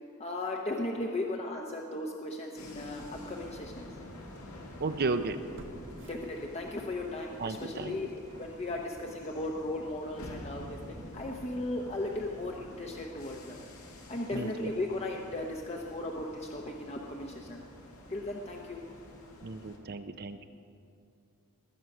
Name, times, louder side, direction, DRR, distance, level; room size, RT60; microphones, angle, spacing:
voice 1, 0.2-3.9 6.0-13.6 14.1-17.6 18.1-18.8, left 2 dB, 30° left, 0 dB, 0.9 m, -36 dB
sound 1, 2.3-2.4 3.0-3.1 5.5-7.0 7.4-7.5, right 1 dB, 60° right, 0.9 m, -52 dB
sound 2, 2.6-19.8, left 1 dB, 80° left, 2.0 m, -48 dB
voice 2, 4.8-5.4 7.4-7.9 14.3-14.7 19.4-20.4, right 3 dB, 45° right, 9 dB, 0.6 m, -34 dB
20.0 x 8.0 x 6.0 m, 2.6 s
head